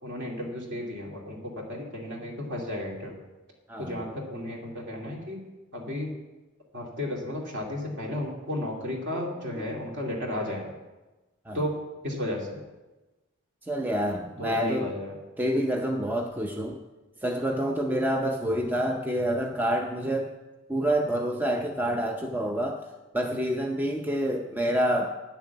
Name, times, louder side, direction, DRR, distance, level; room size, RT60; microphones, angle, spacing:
voice 1, 0.0-3.2 3.8-5.4 5.7-6.2 6.7-10.7 11.5-11.7 12.0-12.6 14.4-15.2, left 1 dB, 55° right, -1 dB, 2.6 m, -33 dB
voice 2, 13.7-14.9 15.4-16.8 17.2-20.3 20.7-22.9 23.1-25.1, equal, 10° right, 3 dB, 0.5 m, -27 dB
9.3 x 7.1 x 7.1 m, 1.1 s
head